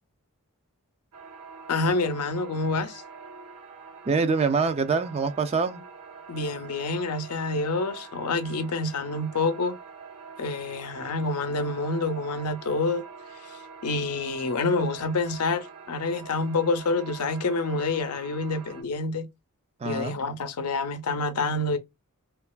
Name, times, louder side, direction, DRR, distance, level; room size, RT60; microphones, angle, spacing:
sound 1, 1.1-18.8, right 5 dB, 85° right, 0.9 m, -45 dB
voice 1, 1.7-3.0 6.3-9.8 10.4-13.0 13.8-19.3 19.8-21.8, left 3 dB, 90° left, 0.6 m, -27 dB
voice 2, 4.1-5.8 19.8-20.2, right 4 dB, 30° right, 0.3 m, -25 dB
3.0 x 2.4 x 2.2 m
head